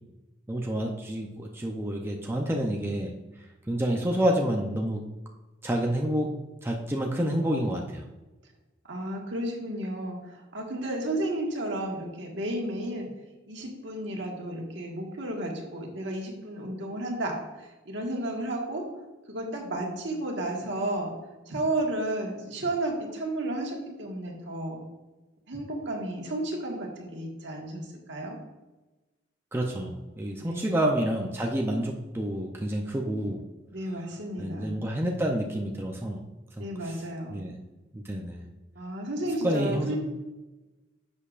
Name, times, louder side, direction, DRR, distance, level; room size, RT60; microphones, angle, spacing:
voice 1, 0.5-3.1 3.7-5.0 5.6-6.3 6.6-8.0 29.5-33.4 34.4-36.2 36.6-36.7 37.3-37.6 37.9-38.4 39.4-39.9, right 1 dB, 10° right, 0 dB, 0.6 m, -28 dB
voice 2, 8.8-13.1 13.5-18.8 19.3-21.1 21.5-24.8 25.5-28.4 30.4-30.8 33.7-34.8 36.6-37.4 38.7-40.0, right 1 dB, 65° right, 0 dB, 1.6 m, -32 dB
10.5 x 6.5 x 2.5 m, 1.1 s
head